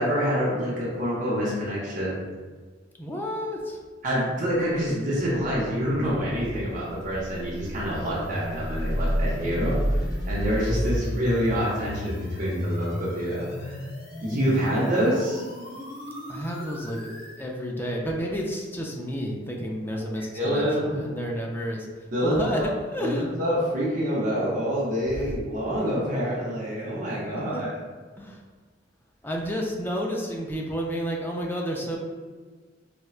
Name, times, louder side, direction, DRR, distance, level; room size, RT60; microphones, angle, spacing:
voice 1, 0.0-2.2 4.0-10.0 10.3-13.7 14.2-15.4 20.2-21.0 22.1-22.7 23.0-27.7, equal, 45° right, -6 dB, 0.7 m, -26 dB
voice 2, 3.0-3.8 16.3-17.0 17.4-21.9 22.2-23.3 25.1-25.2 27.4-27.7 28.2-28.4 29.2-32.0, equal, 10° left, -1 dB, 0.3 m, -31 dB
sound 1, 5.3-17.4, equal, 55° left, 0.8 m, -32 dB
4.1 x 2.2 x 2.3 m, 1.5 s
head